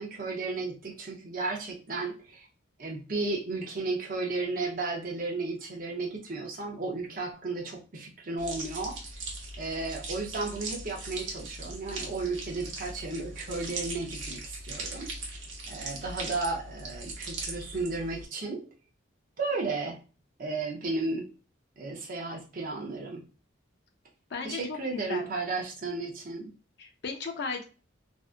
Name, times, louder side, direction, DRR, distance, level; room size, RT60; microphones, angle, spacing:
voice 1, 0.0-2.5 2.8-9.0 9.6-15.1 15.7-18.7 19.4-20.0 20.4-21.3 21.8-23.3 24.4-26.5, right 3 dB, 45° right, -1 dB, 0.6 m, -34 dB
sound 1, 8.4-18.3, right 2 dB, 75° right, 0.8 m, -39 dB
voice 2, 24.3-25.3 26.8-27.6, left 4 dB, 55° left, 3 dB, 0.4 m, -36 dB
2.6 x 2.3 x 2.4 m, 0.35 s
head